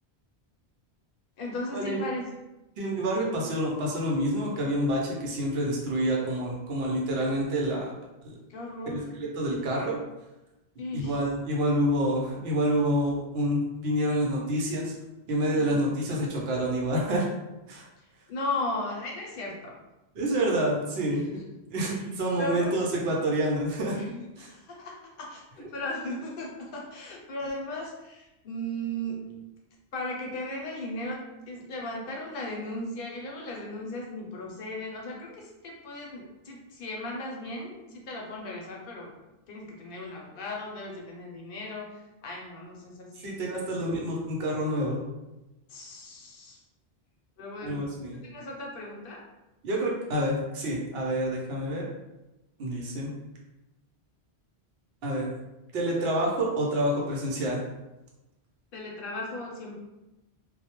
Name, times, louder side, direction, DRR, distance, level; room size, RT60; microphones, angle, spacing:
voice 1, 1.4-2.2 8.5-9.1 10.8-11.2 15.5-15.8 18.3-19.8 21.1-21.2 22.4-22.8 23.9-29.4 29.9-39.1 39.5-43.6 45.7-46.6 47.4-47.9 48.1-49.2 58.7-59.7, left 1 dB, 60° left, -1 dB, 0.7 m, -36 dB
voice 2, 2.8-7.9 8.2-8.3 8.9-10.0 10.9-14.9 15.3-17.3 17.7-17.9 20.2-21.2 21.7-24.0 24.4-24.5 43.2-45.0 47.6-48.2 49.6-51.9 52.6-53.1 55.0-55.3 55.7-57.6, right 1 dB, 70° right, -2 dB, 0.8 m, -28 dB
2.2 x 2.0 x 2.9 m, 1.0 s
omnidirectional pair, 1.1 m